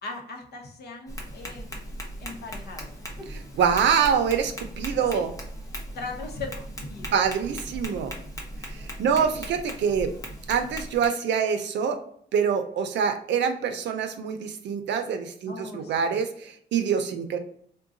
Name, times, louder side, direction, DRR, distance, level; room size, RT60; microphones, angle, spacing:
voice 1, 0.0-2.9 3.2-3.3 5.1-5.2 5.9-7.2 9.2-9.5 15.5-16.2, left 3 dB, 65° left, 2 dB, 0.8 m, -39 dB
Tap, 1.1-11.1, equal, 20° left, 0.6 m, -38 dB
voice 2, 3.6-5.3 7.1-8.2 8.6-10.1 10.5-12.0 12.3-17.4, right 7 dB, 85° right, 7 dB, 0.6 m, -25 dB
3.8 x 2.2 x 2.5 m, 0.64 s
wide cardioid pair, 170°, 18 cm